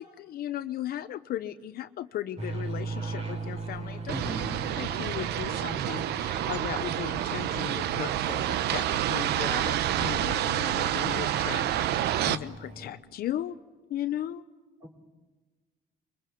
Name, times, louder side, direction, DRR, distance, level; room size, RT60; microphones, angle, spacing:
voice 1, 0.0-4.2 4.8-13.6 13.9-14.4, left 12 dB, 65° left, 12 dB, 0.9 m, -36 dB
sound 1, 2.4-12.9, right 3 dB, 40° right, 4.7 m, -40 dB
voice 2, 4.1-4.6 14.8-15.1, equal, 10° right, 6 dB, 3.8 m, -38 dB
sound 2, 4.1-12.4, right 12 dB, 75° right, 1.0 m, -28 dB
23.0 x 22.5 x 8.5 m, 1.3 s
cardioid pair, 110°, 17 cm